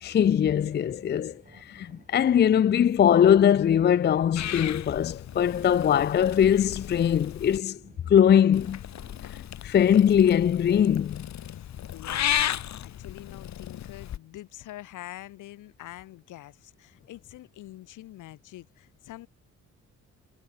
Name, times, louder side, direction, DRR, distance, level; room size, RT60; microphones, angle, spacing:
voice 1, 0.0-7.8 8.1-8.8 9.6-11.3, left 9 dB, 35° left, 0.5 m, -21 dB
sound 1, 0.6-10.1, right 4 dB, 25° right, 4.8 m, -57 dB
Purr / Meow, 4.3-7.6 8.5-14.2, left 11 dB, 65° left, 2.3 m, -34 dB
voice 2, 11.5-19.3, left 15 dB, 85° left, 2.9 m, -45 dB
cardioid pair, 90°, 30 cm